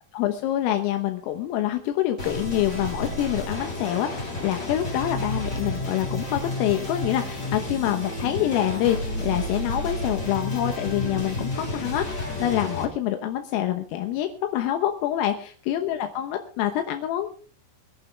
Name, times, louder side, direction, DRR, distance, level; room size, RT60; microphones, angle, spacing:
voice 1, 0.1-17.3, left 12 dB, 85° left, 6 dB, 3.7 m, -26 dB
sound 1, 2.2-12.8, left 1 dB, 25° left, 3.5 m, -31 dB
23.5 x 11.5 x 3.4 m, 0.41 s
omnidirectional pair, 5.9 m